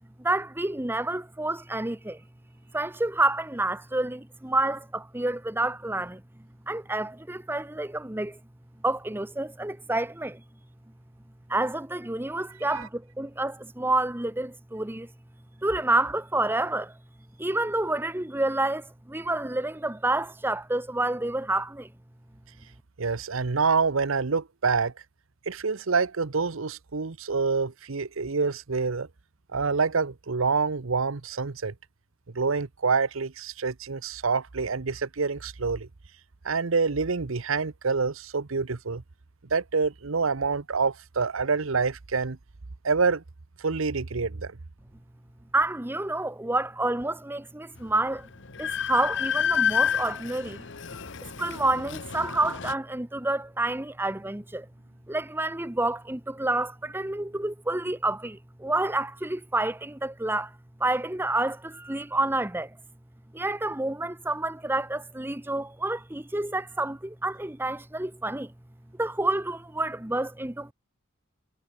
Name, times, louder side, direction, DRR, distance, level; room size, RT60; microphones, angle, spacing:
voice 1, 0.2-2.2 2.7-6.2 6.7-8.4 8.8-10.4 11.5-15.1 15.6-16.9 17.4-21.9 45.5-48.3 48.6-50.7 51.4-54.7 55.1-60.5 60.8-62.7 63.3-68.5 69.0-70.7, right 2 dB, 10° right, 0.9 m, -28 dB
voice 2, 23.0-24.9 25.5-29.1 29.5-31.7 32.3-35.9 36.4-39.0 39.5-42.4 42.8-43.2 43.6-44.6, right 4 dB, 80° right, 0.9 m, -27 dB
Train, 47.8-47.9 48.2-52.7, left 8 dB, 60° left, 1.0 m, -29 dB
head